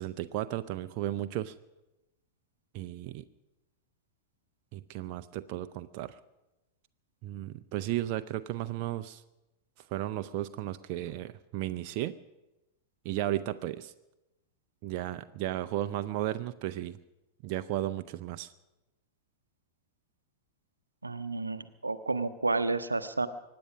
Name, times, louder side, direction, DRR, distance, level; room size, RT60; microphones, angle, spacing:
voice 1, 0.0-1.5 2.7-3.3 4.7-6.2 7.2-9.2 9.9-12.2 13.0-13.9 14.8-17.0 17.4-18.5, right 14 dB, 45° right, 10 dB, 0.5 m, -34 dB
voice 2, 21.0-23.3, right 3 dB, 80° right, 12 dB, 0.7 m, -31 dB
24.0 x 9.5 x 6.2 m, 0.98 s
figure-of-eight pair, 90°, 0 cm